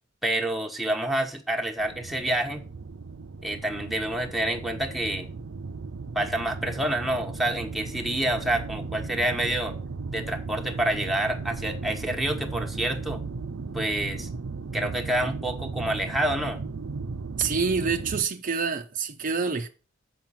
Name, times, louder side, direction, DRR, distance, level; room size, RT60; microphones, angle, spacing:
voice 1, 0.2-2.6 3.4-5.3 6.1-9.8 10.1-13.2 13.7-14.3 14.7-16.6, right 1 dB, ahead, 1.2 m, -28 dB
sound 1, 1.8-18.2, right 4 dB, 85° right, 0.6 m, -36 dB
voice 2, 17.4-19.7, right 5 dB, 45° right, 0.6 m, -27 dB
7.4 x 5.1 x 7.3 m
head